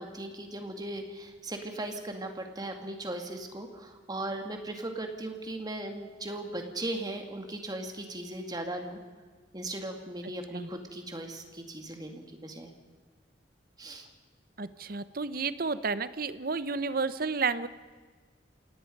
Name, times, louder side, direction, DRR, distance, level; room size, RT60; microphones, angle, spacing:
voice 1, 0.0-9.0 9.5-12.7 13.8-14.1, right 1 dB, 20° right, 4 dB, 2.2 m, -38 dB
voice 2, 14.6-17.7, right 4 dB, 50° right, 14 dB, 0.8 m, -31 dB
27.5 x 18.0 x 5.4 m, 1.5 s
head